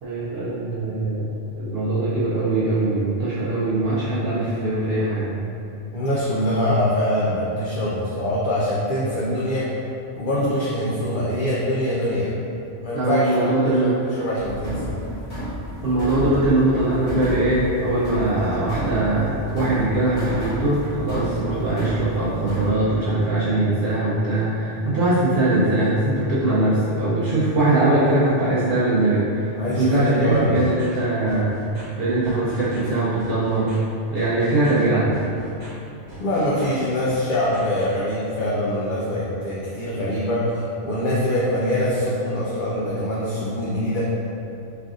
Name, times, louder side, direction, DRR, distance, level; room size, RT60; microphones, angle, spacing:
voice 1, 0.0-5.3 12.9-13.9 15.8-31.6 32.0-33.7 34.1-35.1, right 2 dB, 65° right, -10 dB, 0.7 m, -21 dB
voice 2, 5.9-9.7 10.2-12.3 12.8-13.9 14.2-14.9 29.6-30.6 36.2-44.0, left 1 dB, 60° left, -7 dB, 0.5 m, -23 dB
sound 1, 14.4-22.7, equal, 90° left, 1.3 m, -31 dB
sound 2, 30.3-31.0 31.3-31.8 32.2-32.9 33.2-33.7 34.2-34.8 35.1-35.7 36.1-36.8 37.0-38.0, equal, 20° right, 1.0 m, -42 dB
3.4 x 2.5 x 2.4 m, 2.7 s
omnidirectional pair, 1.2 m